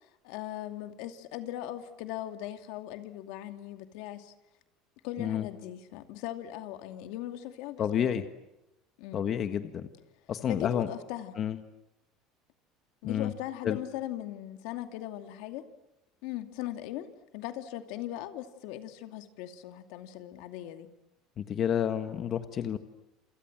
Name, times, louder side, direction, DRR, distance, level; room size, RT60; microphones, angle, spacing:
voice 1, 0.2-4.3 5.0-8.1 9.0-9.3 10.5-11.4 13.0-15.6 16.2-17.1 17.3-20.9, left 13 dB, 75° left, 7 dB, 2.5 m, -39 dB
voice 2, 7.8-8.2 9.1-9.9 10.3-10.9 11.4-11.6 13.0-13.3 13.6-13.8 21.4-22.8, left 9 dB, 40° left, 9 dB, 1.5 m, -29 dB
28.5 x 28.0 x 7.5 m, 0.91 s
cardioid pair, 140°, 0 cm